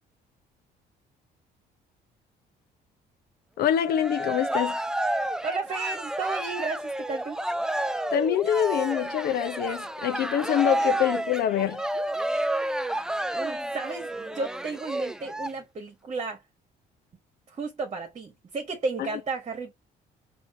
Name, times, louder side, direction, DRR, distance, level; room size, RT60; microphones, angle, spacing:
voice 1, 3.6-4.8 8.1-11.8 19.0-19.2, left 10 dB, 70° left, 0.7 m, -25 dB
Cheering, 3.7-15.5, right 1 dB, 5° right, 0.3 m, -30 dB
voice 2, 5.4-7.4 13.3-16.4 17.5-19.7, right 4 dB, 35° right, 1.2 m, -33 dB
4.3 x 2.7 x 2.7 m
cardioid pair, 110°, 17 cm